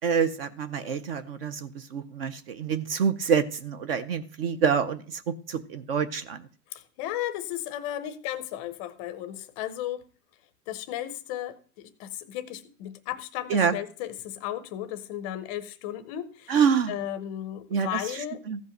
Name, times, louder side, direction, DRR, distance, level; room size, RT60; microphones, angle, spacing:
voice 1, 0.0-6.5 13.5-13.8 16.5-16.9 17.7-18.6, right 6 dB, 35° right, 0.6 m, -27 dB
voice 2, 6.7-10.0 10.7-16.6 16.9-18.4, left 12 dB, 20° left, 0.6 m, -35 dB
14.5 x 5.4 x 6.5 m
hypercardioid pair, 150°, 50 cm